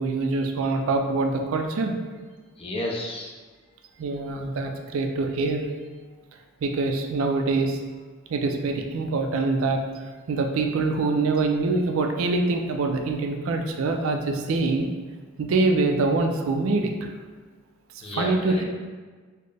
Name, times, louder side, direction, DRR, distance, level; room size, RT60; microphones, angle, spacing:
voice 1, 0.0-1.9 4.0-5.7 6.6-7.8 8.3-9.8 10.3-14.9 15.4-16.9 18.2-18.6, right 3 dB, 70° right, 4 dB, 0.4 m, -24 dB
voice 2, 2.6-3.3 18.0-18.6, left 1 dB, 25° left, -2 dB, 0.5 m, -31 dB
4.1 x 2.1 x 3.3 m, 1.4 s
head